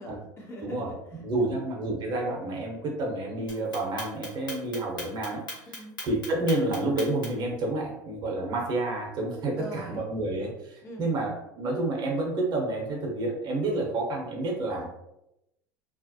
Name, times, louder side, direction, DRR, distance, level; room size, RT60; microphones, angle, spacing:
voice 1, 0.0-1.6 5.7-5.9 9.6-10.0 10.8-11.1 14.8-14.9, equal, 25° left, -1 dB, 0.7 m, -43 dB
voice 2, 1.2-5.7 6.0-14.9, right 2 dB, 45° right, 0 dB, 0.8 m, -29 dB
Clock, 3.5-7.5, left 2 dB, 85° left, 0.9 m, -38 dB
2.3 x 2.0 x 2.7 m, 0.86 s
hypercardioid pair, 80°, 10 cm